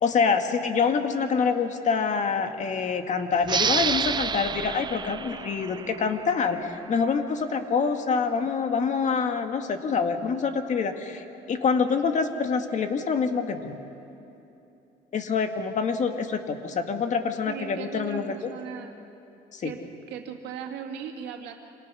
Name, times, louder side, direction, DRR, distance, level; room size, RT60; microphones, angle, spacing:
voice 1, 0.0-13.8 15.1-18.5 19.5-19.7, left 5 dB, 45° left, 6 dB, 1.8 m, -26 dB
sound 1, 3.4-6.7, right 6 dB, 25° right, 0.5 m, -29 dB
voice 2, 17.5-19.0 19.6-21.6, right 7 dB, 85° right, 3 dB, 2.3 m, -37 dB
27.5 x 26.5 x 6.3 m, 2.9 s
cardioid pair, 110°, 17 cm